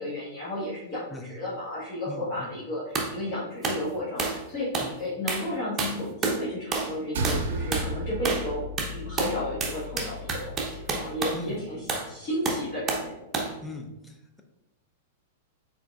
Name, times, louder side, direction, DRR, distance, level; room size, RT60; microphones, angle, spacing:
voice 1, 0.0-8.6 8.9-13.2, left 1 dB, 35° left, -8 dB, 1.4 m, -33 dB
voice 2, 2.1-2.5 4.8-4.9 11.3-11.9 13.6-14.4, left 1 dB, 10° left, 3 dB, 0.6 m, -40 dB
sound 1, 3.0-3.1 3.6-3.8 4.2-4.4 4.7-4.9 5.3-5.5 5.8-6.4 6.7-7.0 7.2-7.5 7.7-7.9 8.3-8.5 8.8-11.4 11.9-12.1 12.5-13.1 13.3-13.6, right 4 dB, 20° right, 0.8 m, -29 dB
sound 2, 7.1-11.7, right 1 dB, 60° right, 0.5 m, -35 dB
4.8 x 3.9 x 2.4 m, 0.96 s
figure-of-eight pair, 100°, 0 cm